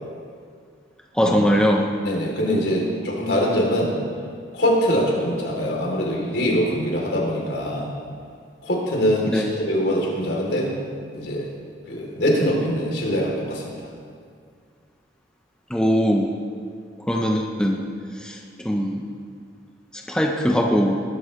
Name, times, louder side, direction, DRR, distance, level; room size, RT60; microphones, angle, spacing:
voice 1, 1.1-1.9 9.3-9.5 15.7-16.3 17.1-17.8 18.1-19.0 19.9-21.0, equal, 5° left, 0 dB, 0.9 m, -21 dB
voice 2, 2.0-3.9 4.5-7.9 8.6-10.8 11.1-11.5 11.9-13.8, equal, 75° left, -2 dB, 3.4 m, -23 dB
20.5 x 12.5 x 3.3 m, 2.2 s
head